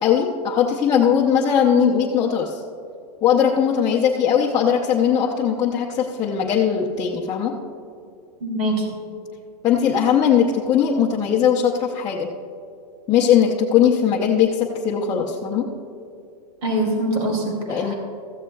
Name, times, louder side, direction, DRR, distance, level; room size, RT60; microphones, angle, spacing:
voice 1, 0.0-2.6 3.2-7.5 9.6-12.3 13.1-15.7 17.6-17.9, left 8 dB, 15° left, -3 dB, 0.6 m, -19 dB
voice 2, 8.4-9.0 16.6-18.0, right 1 dB, 55° right, 0 dB, 2.9 m, -24 dB
15.5 x 14.0 x 2.3 m, 2.4 s
supercardioid pair, 155°, 21 cm